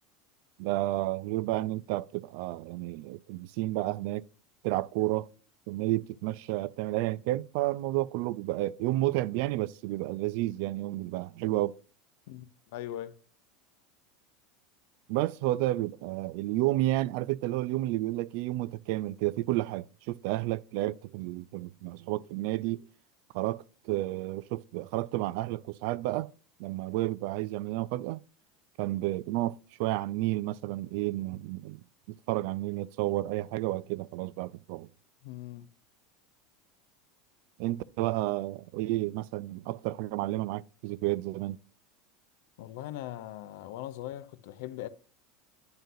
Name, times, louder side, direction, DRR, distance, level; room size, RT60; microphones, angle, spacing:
voice 1, 0.6-4.2 4.6-5.3 5.7-11.7 15.1-22.8 23.3-26.3 26.6-28.2 28.8-34.9 37.6-41.6, right 17 dB, 65° right, 0.3 m, -31 dB
voice 2, 12.3-13.1 35.2-35.7 42.6-44.9, left 13 dB, 75° left, 0.7 m, -40 dB
10.5 x 3.9 x 2.7 m
supercardioid pair, 140°, 0 cm